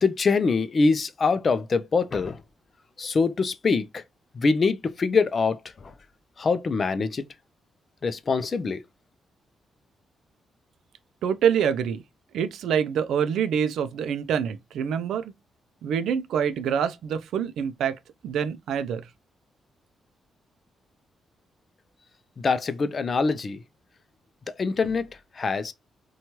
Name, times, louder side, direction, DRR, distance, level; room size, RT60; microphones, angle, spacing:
voice 1, 0.0-2.4 3.0-4.0 4.3-5.9 6.4-7.3 8.0-8.8 22.4-23.6 24.6-25.1 25.4-25.7, left 4 dB, 40° left, 0.3 m, -24 dB
voice 2, 11.2-12.0 12.3-15.3 15.8-18.0 18.2-19.1, right 8 dB, 85° right, 0.3 m, -26 dB
2.8 x 2.3 x 2.9 m
cardioid pair, 100°, 0 cm